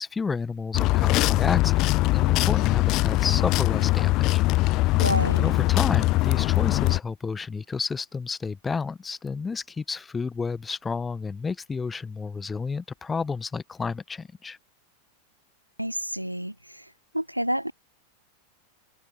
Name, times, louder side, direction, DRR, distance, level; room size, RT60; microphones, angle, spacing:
voice 1, 0.0-4.4 5.4-14.6, left 5 dB, 15° left, 1.1 m, -31 dB
sound 1, 0.7-7.0, left 19 dB, 40° left, 0.4 m, -22 dB
voice 2, 5.0-5.5 15.8-16.5 17.1-17.7, equal, 90° right, 0.4 m, -28 dB
open air
figure-of-eight pair, 90°, 0 cm